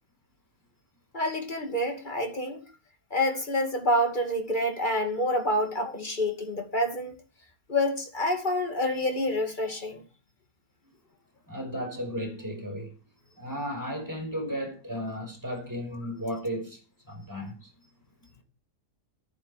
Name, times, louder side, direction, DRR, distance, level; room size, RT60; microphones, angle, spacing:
voice 1, 1.1-2.6 3.1-7.1 7.7-10.0, left 1 dB, 30° left, 2.6 m, -27 dB
voice 2, 11.5-12.9 13.4-16.8 17.1-17.7, equal, 10° right, 5.5 m, -34 dB
15.0 x 9.6 x 5.1 m
omnidirectional pair, 1.7 m